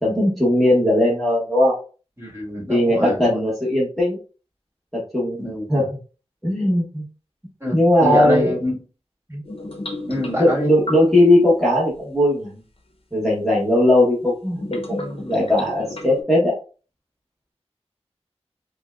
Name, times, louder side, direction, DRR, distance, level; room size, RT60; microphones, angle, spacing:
voice 1, 0.0-1.7 2.7-4.2 4.9-5.4 5.7-6.0 6.4-7.1 7.7-8.5 9.3-9.4 10.3-12.6 13.1-16.5, left 1 dB, ahead, -6 dB, 1.1 m, -18 dB
voice 2, 2.2-3.4 5.4-5.8 7.6-8.8 10.1-10.7, equal, 25° right, -4 dB, 1.8 m, -24 dB
sound 1, 9.4-11.4 13.1-13.2 14.5-16.2, left 1 dB, 60° left, 0.8 m, -33 dB
5.4 x 2.2 x 2.4 m, 0.36 s
wide cardioid pair, 70°, 11 cm